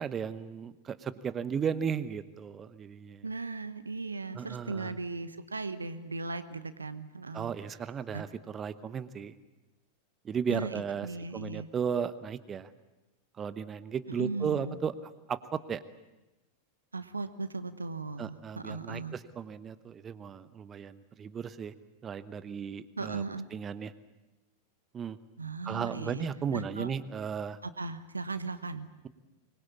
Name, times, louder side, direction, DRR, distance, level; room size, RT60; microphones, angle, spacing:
voice 1, 0.0-3.3 4.3-5.0 7.3-9.3 10.2-12.7 13.4-14.9 15.3-15.8 18.2-21.7 22.0-23.2 23.5-23.9 24.9-25.2 25.6-27.6, right 7 dB, 25° right, 14 dB, 1.0 m, -35 dB
voice 2, 3.2-7.5 8.1-8.2 10.5-10.7 11.0-11.7 14.2-14.8 16.9-19.1 23.0-23.5 25.4-26.3 26.5-26.9 27.6-28.9, right 3 dB, 80° right, 13 dB, 1.1 m, -37 dB
24.5 x 21.0 x 8.6 m, 1.0 s
figure-of-eight pair, 90°, 0 cm